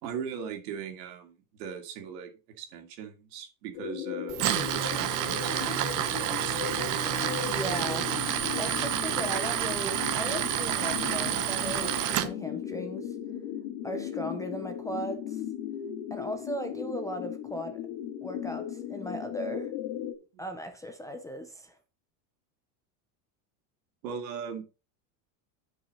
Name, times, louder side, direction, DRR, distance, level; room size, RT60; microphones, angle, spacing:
voice 1, 0.0-2.3 2.6-4.4 4.7-6.7 24.0-24.8, right 7 dB, 85° right, 2.6 m, -39 dB
sound 1, 3.7-20.1, left 9 dB, 70° left, 2.2 m, -37 dB
Tools, 4.3-12.3, right 11 dB, 40° right, 0.9 m, -29 dB
voice 2, 7.4-8.1 8.6-13.2 13.8-15.4 16.1-17.8 18.2-19.7 20.4-21.8, equal, 10° left, 0.4 m, -37 dB
10.0 x 5.5 x 4.1 m
cardioid pair, 155°, 48 cm